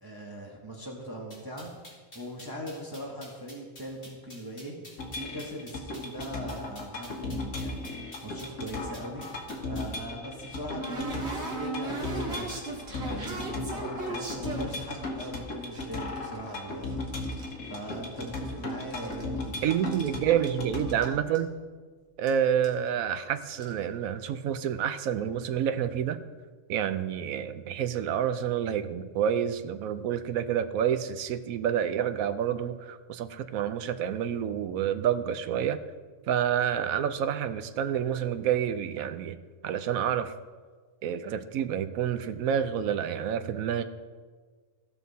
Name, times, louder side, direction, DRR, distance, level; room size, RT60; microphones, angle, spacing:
voice 1, 0.0-1.7 2.1-7.9 8.2-9.3 9.7-16.9 17.6-19.7, equal, 15° right, -2 dB, 1.3 m, -40 dB
sound 1, 1.3-9.9, left 1 dB, 40° left, 3.2 m, -49 dB
sound 2, 5.0-21.2, left 2 dB, 80° left, 1.8 m, -37 dB
sound 3, 10.0-15.3 15.7-17.5 17.8-18.5 18.8-20.1 20.5-20.6 20.8-21.0 21.3-21.4 22.3-22.4 22.6-22.9 23.4-23.7, right 3 dB, 50° right, 1.8 m, -38 dB
voice 2, 19.6-21.5 22.2-26.2 26.7-35.8 36.3-39.4 39.6-40.3 41.0-43.8, right 9 dB, 80° right, 11 dB, 1.1 m, -28 dB
16.0 x 5.9 x 4.1 m, 1.5 s
omnidirectional pair, 1.5 m